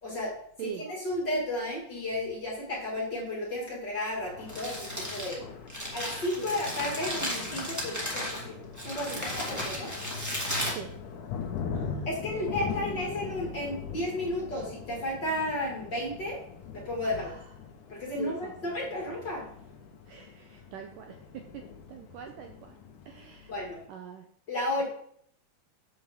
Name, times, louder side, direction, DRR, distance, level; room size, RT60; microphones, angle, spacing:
voice 1, 0.0-5.4 5.9-8.6 8.8-9.9 10.6-10.7 12.1-16.4 16.7-17.3 17.9-19.5 23.5-23.8 24.5-24.8, left 1 dB, 35° left, -4 dB, 2.4 m, -33 dB
Thunder, 4.1-23.9, left 6 dB, 75° left, 1.9 m, -42 dB
Crumpling crinkling, 4.3-11.6, equal, 5° right, 1.5 m, -35 dB
voice 2, 11.7-12.1 17.0-17.4 18.2-18.5 20.1-21.6 21.9-22.8 23.1-23.5 23.9-24.3, right 8 dB, 85° right, 4 dB, 1.9 m, -42 dB
7.5 x 4.9 x 7.1 m, 0.64 s
omnidirectional pair, 4.5 m